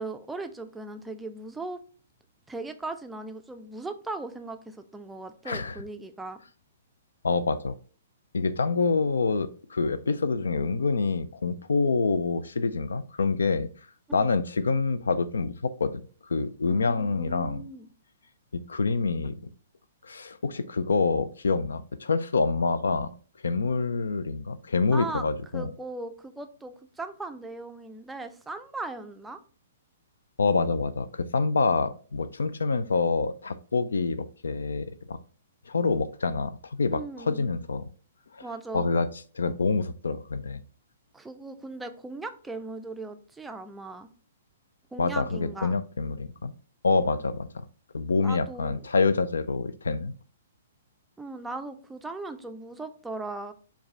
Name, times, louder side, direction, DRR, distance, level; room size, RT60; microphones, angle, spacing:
voice 1, 0.0-1.8 2.5-6.4 14.1-14.3 16.6-17.9 24.9-25.3 25.5-29.4 36.9-37.5 38.4-38.9 41.1-44.1 44.9-45.7 48.2-48.8 51.2-53.5, right 3 dB, 5° right, 0.4 m, -38 dB
voice 2, 5.5-5.8 7.2-7.7 8.3-13.7 14.1-16.0 16.3-17.6 18.5-19.4 20.0-23.1 23.4-25.7 30.4-35.2 35.7-37.9 38.3-38.5 38.7-39.1 39.3-40.6 45.0-46.5 46.8-47.6 47.9-50.2, left 4 dB, 75° left, 0.3 m, -26 dB
4.6 x 2.3 x 4.3 m
figure-of-eight pair, 120°, 0 cm